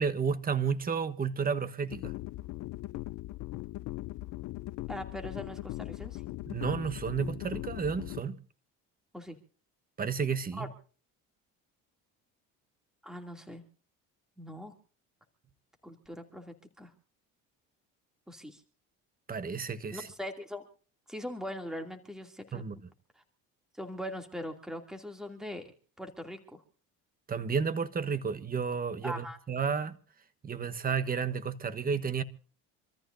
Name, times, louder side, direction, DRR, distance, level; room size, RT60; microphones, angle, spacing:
voice 1, 0.0-2.1 6.5-8.4 10.0-10.7 19.3-20.0 22.5-22.8 27.3-30.0 30.4-32.2, right 6 dB, 25° right, 1.3 m, -31 dB
sound 1, 1.9-8.2, left 18 dB, 60° left, 0.6 m, -40 dB
voice 2, 4.9-6.2 9.1-9.4 10.5-10.7 13.0-13.6 14.4-14.7 15.8-16.9 18.3-18.6 19.9-20.6 21.1-22.6 23.2-23.3 23.8-26.6 29.0-29.4, equal, ahead, 2.7 m, -41 dB
27.0 x 14.0 x 2.7 m
cardioid pair, 105°, 33 cm